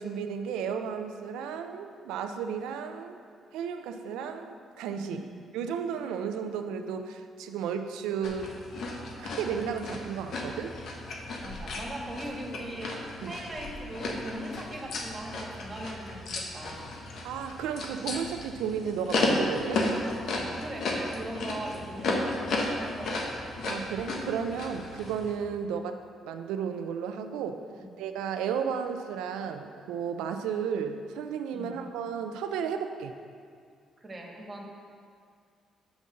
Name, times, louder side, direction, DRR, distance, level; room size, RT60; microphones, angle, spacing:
voice 1, 0.0-3.2 3.5-5.3 5.5-8.6 9.2-10.8 13.2-13.4 17.2-19.8 23.6-27.6 28.0-33.1, right 7 dB, 85° right, 8 dB, 0.4 m, -33 dB
sound 1, 8.2-25.3, left 2 dB, 70° left, 1.1 m, -34 dB
voice 2, 11.4-12.9 13.3-16.9 20.4-23.4 31.5-31.7 34.0-34.7, right 1 dB, 30° right, 0 dB, 1.9 m, -40 dB
7.1 x 5.4 x 6.3 m, 2.2 s
supercardioid pair, 65°, 0 cm